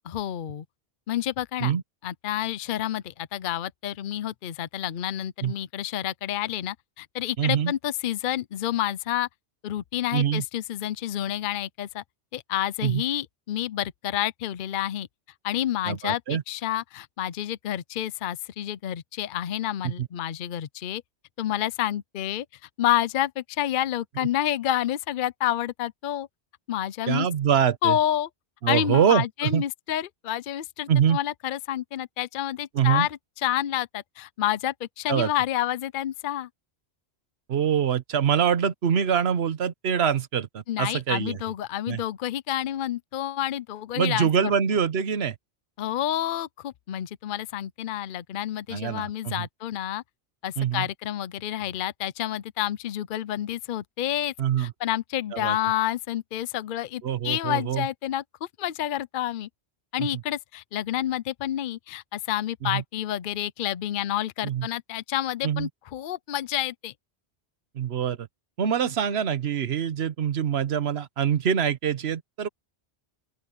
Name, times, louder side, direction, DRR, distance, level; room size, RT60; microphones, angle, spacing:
voice 1, 0.0-0.6 1.1-1.7 2.0-9.3 9.6-12.0 12.3-15.1 15.4-21.0 21.4-22.5 22.8-26.3 26.7-27.3 27.8-28.3 28.7-36.5 40.7-44.3 45.8-50.0 50.4-59.5 59.9-66.9, left 12 dB, 55° left, 0.7 m, -29 dB
voice 2, 7.4-7.7 10.1-10.4 12.8-13.0 15.8-16.4 19.8-20.1 27.1-28.0 28.6-29.6 30.9-31.2 32.7-33.1 35.1-35.3 37.5-41.4 41.9-42.0 43.9-45.3 48.7-49.5 50.6-50.9 54.4-54.7 55.3-55.6 57.0-57.9 60.0-60.1 62.6-62.8 64.4-64.7 65.4-65.7 67.7-68.3 68.6-72.5, right 8 dB, 70° right, 1.2 m, -24 dB
open air
omnidirectional pair, 1.1 m